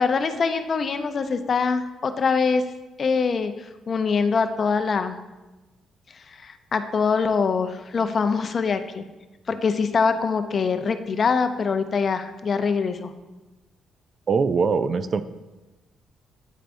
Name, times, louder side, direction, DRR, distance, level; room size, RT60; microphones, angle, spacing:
voice 1, 0.0-2.6 3.0-5.2 6.4-9.0 9.5-13.1, left 5 dB, 45° left, 9 dB, 0.5 m, -23 dB
voice 2, 14.3-15.2, right 5 dB, 45° right, 13 dB, 0.3 m, -22 dB
9.1 x 4.6 x 2.5 m, 1.1 s
cardioid pair, 90°, 0 cm